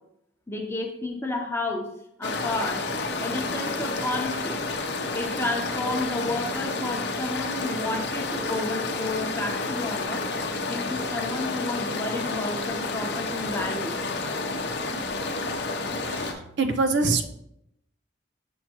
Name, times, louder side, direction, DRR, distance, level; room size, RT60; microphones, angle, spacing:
voice 1, 0.5-1.9 2.2-2.9 3.2-4.6 5.1-10.2 10.7-14.0, left 2 dB, 10° left, 2 dB, 0.8 m, -31 dB
sound 1, 2.2-16.3, left 3 dB, 55° left, 0.7 m, -30 dB
voice 2, 16.1-17.2, right 3 dB, 60° right, 6 dB, 0.5 m, -24 dB
6.5 x 5.8 x 3.0 m, 0.78 s
head